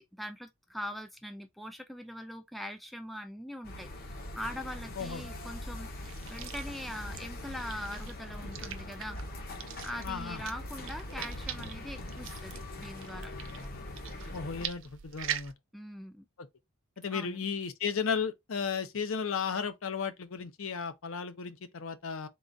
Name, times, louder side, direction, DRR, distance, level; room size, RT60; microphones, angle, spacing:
voice 1, 0.2-9.2 9.8-13.3 15.7-16.3 17.1-17.4, equal, ahead, 0.3 m, -42 dB
sound 1, 3.6-14.7, left 1 dB, 45° left, 0.8 m, -42 dB
sound 2, 5.9-15.5, right 11 dB, 60° right, 0.4 m, -43 dB
voice 2, 10.0-10.4 14.3-15.5 16.4-16.5 17.0-22.3, left 6 dB, 70° left, 0.6 m, -34 dB
3.8 x 2.4 x 3.8 m
head